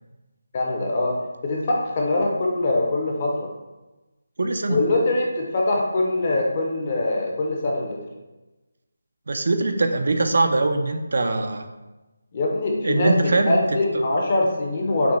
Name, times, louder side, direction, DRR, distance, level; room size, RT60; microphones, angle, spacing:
voice 1, 0.5-3.5 4.7-8.0 12.3-15.2, left 2 dB, 30° left, -1 dB, 0.7 m, -23 dB
voice 2, 4.4-4.8 9.3-11.6 12.8-13.6, right 2 dB, 60° right, 6 dB, 0.4 m, -22 dB
5.9 x 2.1 x 3.9 m, 1.1 s
figure-of-eight pair, 175°, 0 cm